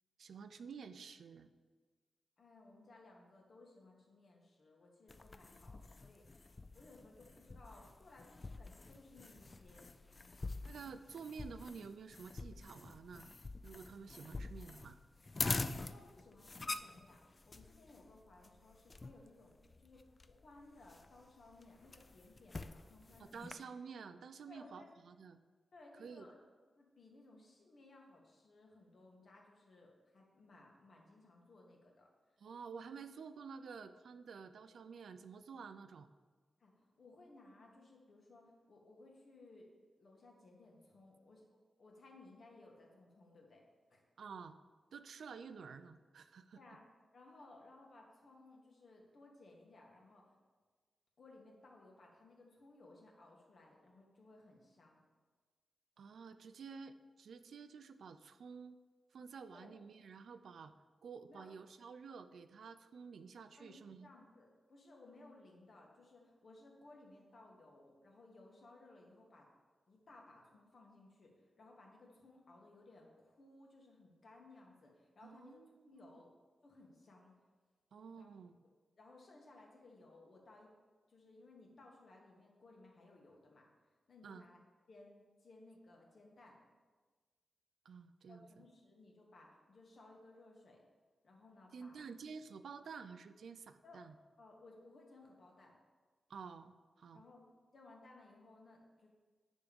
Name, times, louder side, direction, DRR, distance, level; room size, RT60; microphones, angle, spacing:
voice 1, 0.2-1.5 10.6-13.3 13.6-15.0 23.2-25.4 26.0-26.3 32.4-36.1 44.2-44.6 44.9-46.6 56.0-58.8 59.1-60.7 61.0-64.1 75.2-76.2 77.9-78.6 84.2-84.5 87.8-88.6 91.7-94.1 96.3-96.7 97.0-97.2, right 5 dB, 75° right, 11 dB, 0.4 m, -51 dB
voice 2, 2.4-6.4 6.7-9.9 15.5-23.5 24.5-24.9 25.7-26.4 26.7-32.4 36.6-39.7 39.9-41.4 41.8-43.6 43.9-44.0 46.5-46.8 47.1-50.3 51.2-55.0 59.5-59.7 61.3-61.5 63.6-69.5 69.9-76.3 76.6-77.4 78.1-78.3 78.6-80.7 81.1-83.7 84.1-84.6 84.9-86.6 88.3-90.8 91.2-92.0 93.8-94.0 94.4-95.8 97.1-97.4 97.7-99.1, left 2 dB, 50° left, -1 dB, 1.6 m, -61 dB
sound 1, 5.1-23.5, left 3 dB, 25° left, 0.3 m, -46 dB
10.5 x 3.5 x 6.9 m, 1.4 s
wide cardioid pair, 165°, 0 cm